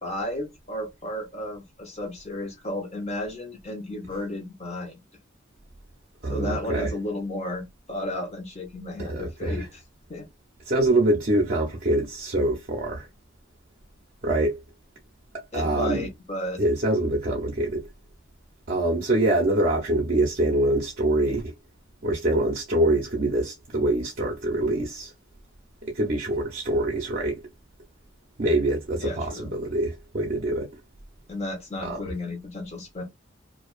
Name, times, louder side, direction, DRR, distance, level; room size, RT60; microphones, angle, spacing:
voice 1, 0.0-5.0 6.3-9.8 10.1-10.3 15.5-16.6 29.0-29.5 31.3-33.0, left 1 dB, 35° left, 0.9 m, -33 dB
voice 2, 6.2-6.9 9.0-9.7 10.7-13.1 14.2-14.6 15.5-16.1 16.6-17.9 18.7-21.5 22.0-25.1 25.8-27.4 28.4-30.7 31.8-32.0, right 1 dB, 45° right, 0.6 m, -24 dB
2.5 x 2.3 x 2.4 m
head